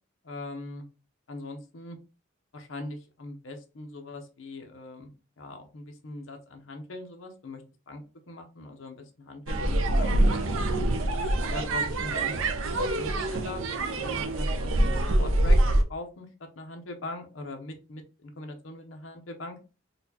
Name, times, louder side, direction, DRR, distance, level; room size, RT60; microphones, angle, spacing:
voice 1, 0.2-0.8 1.3-2.0 2.5-5.1 5.4-10.2 11.1-11.2 11.5-13.6 13.9-15.6 15.9-16.3 16.6-19.6, left 2 dB, 75° left, 4 dB, 0.7 m, -41 dB
sound 1, 9.5-15.8, right 1 dB, 90° right, 0.6 m, -25 dB
4.1 x 2.2 x 2.8 m, 0.31 s
head